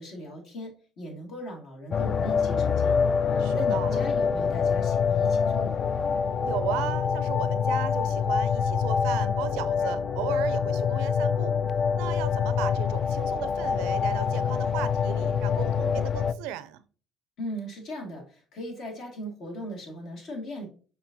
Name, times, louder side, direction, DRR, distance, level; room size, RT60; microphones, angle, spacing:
voice 1, 0.0-6.3 17.4-20.7, equal, 60° left, 1.9 m, -39 dB
sound 1, 1.9-16.3, left 6 dB, 45° left, 0.3 m, -25 dB
voice 2, 3.4-4.0 6.4-11.5 11.9-16.8, right 12 dB, 80° right, 0.4 m, -35 dB
6.0 x 3.2 x 2.6 m
supercardioid pair, 80°, 0 cm